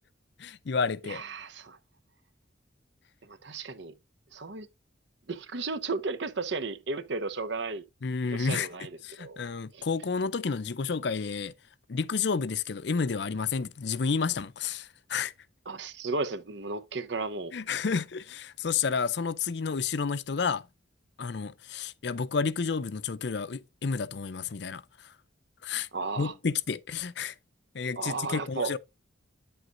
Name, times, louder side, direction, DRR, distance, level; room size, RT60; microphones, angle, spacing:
voice 1, 0.4-1.2 8.0-8.7 9.0-11.5 11.9-15.3 17.5-20.6 21.2-25.1 25.6-25.9 26.2-27.3 27.7-28.8, left 5 dB, 60° left, 0.5 m, -30 dB
voice 2, 1.0-1.8 3.3-3.9 4.3-4.7 5.3-7.8 8.3-8.9 9.2-9.5 9.7-9.9 15.7-17.5 25.9-26.3 28.0-28.7, right 3 dB, 65° right, 0.8 m, -34 dB
9.3 x 7.9 x 2.6 m
head